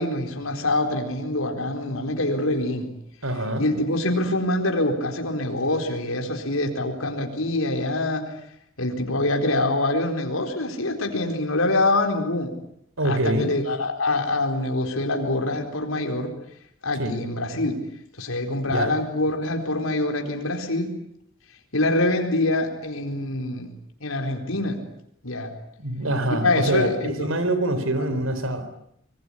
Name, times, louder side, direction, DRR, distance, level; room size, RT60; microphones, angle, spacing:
voice 1, 0.0-2.9 3.6-8.3 8.8-12.5 13.0-16.3 16.8-17.8 18.2-20.9 21.7-23.7 24.0-24.8 25.2-25.5 26.3-27.3 28.0-28.1, left 2 dB, 85° left, 3 dB, 4.2 m, -25 dB
voice 2, 3.2-3.6 13.0-13.5 17.0-17.2 18.7-18.9 25.8-28.7, right 1 dB, 75° right, 11 dB, 4.0 m, -25 dB
25.5 x 22.0 x 9.9 m, 0.72 s
head